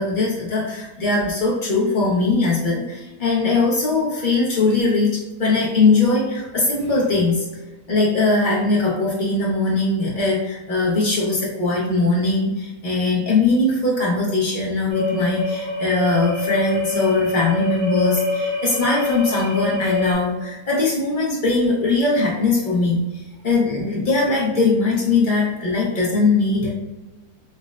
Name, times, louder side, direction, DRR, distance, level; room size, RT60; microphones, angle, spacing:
voice 1, 0.0-7.5 7.9-26.7, left 3 dB, 60° left, -5 dB, 0.5 m, -20 dB
sound 1, 14.9-20.1, left 3 dB, 80° right, 1.9 m, -25 dB
5.1 x 2.0 x 2.3 m, 1.1 s
omnidirectional pair, 1.8 m